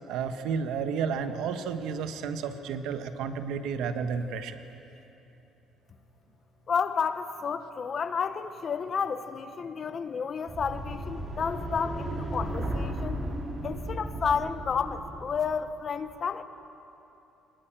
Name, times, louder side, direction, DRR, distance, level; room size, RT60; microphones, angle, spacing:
voice 1, 0.1-4.6, right 6 dB, 80° right, 8 dB, 1.4 m, -32 dB
voice 2, 6.7-13.2 13.6-16.4, left 6 dB, 35° left, 11 dB, 0.9 m, -31 dB
sound 1, 10.5-15.7, right 1 dB, 25° right, 2.9 m, -35 dB
22.5 x 21.0 x 9.0 m, 3.0 s
cardioid pair, 160°, 0 cm